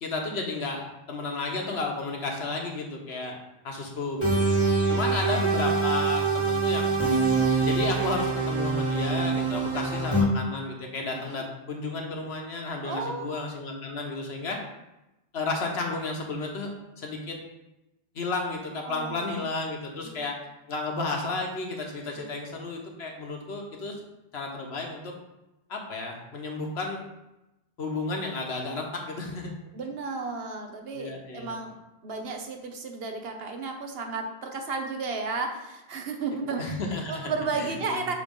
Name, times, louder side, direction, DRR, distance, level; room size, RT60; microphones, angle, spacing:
voice 1, 0.0-3.4 3.6-4.5 4.9-6.9 7.6-14.6 15.3-17.4 18.1-20.4 20.7-23.9 24.3-25.1 25.7-27.0 27.8-29.5 30.9-31.6 36.6-38.1, left 3 dB, 90° left, 1 dB, 1.3 m, -32 dB
sound 1, 4.2-10.2, right 3 dB, 25° left, 2.1 m, -25 dB
voice 2, 4.9-5.4 9.6-9.9 11.1-11.4 12.8-13.3 18.9-19.4 20.0-20.2 22.2-22.3 29.7-31.8 32.0-36.7 37.1-38.1, right 4 dB, 70° right, 4 dB, 1.1 m, -33 dB
6.6 x 3.1 x 5.3 m, 0.95 s
omnidirectional pair, 1.1 m